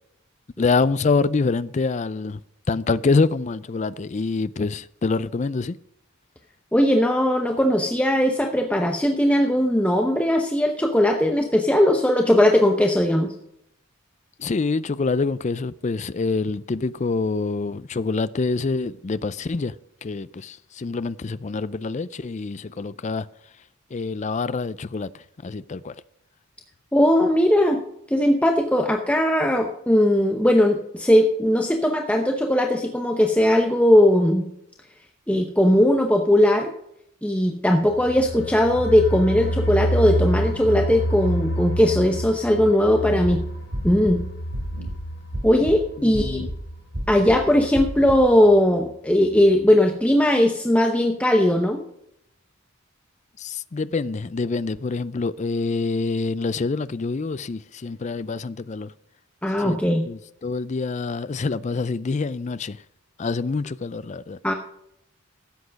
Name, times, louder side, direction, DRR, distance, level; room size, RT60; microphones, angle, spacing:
voice 1, 0.6-2.4 2.7-5.8 14.4-19.7 20.0-23.3 23.9-25.1 25.4-26.0 46.0-46.5 53.4-58.9 59.6-59.8 60.1-62.8 63.2-64.4, left 4 dB, 35° left, 0.4 m, -26 dB
voice 2, 6.7-13.3 26.9-27.8 28.1-34.4 35.3-36.7 37.2-43.4 43.8-44.2 45.4-46.4 47.1-51.8 59.4-60.0 64.4-64.5, left 1 dB, 5° left, 0.8 m, -19 dB
sound 1, 37.9-48.5 48.8-48.9 49.3-49.4, equal, 70° left, 2.8 m, -29 dB
sound 2, 43.2-43.3 43.7-44.1 44.5-44.9 45.3-45.8 46.1-46.6 46.9-47.4 47.7-48.2, equal, 50° right, 3.0 m, -31 dB
13.0 x 8.4 x 5.2 m
head